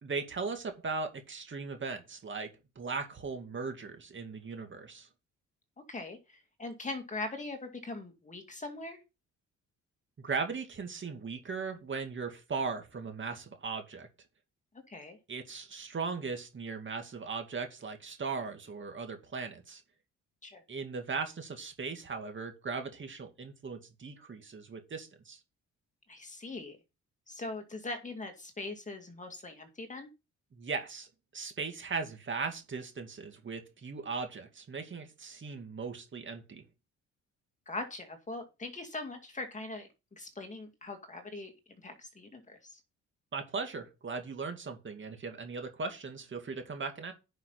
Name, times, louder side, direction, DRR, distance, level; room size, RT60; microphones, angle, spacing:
voice 1, 0.0-2.5 2.8-5.1 10.2-14.1 15.3-19.8 20.7-25.4 30.6-36.6 43.3-47.1, right 4 dB, 40° right, 5 dB, 2.4 m, -38 dB
voice 2, 5.9-9.0 14.9-15.2 20.4-20.6 26.1-26.8 27.3-30.1 37.7-42.8, left 2 dB, 25° left, 5 dB, 2.3 m, -41 dB
10.5 x 5.7 x 4.0 m, 0.27 s
cardioid pair, 90°, 30 cm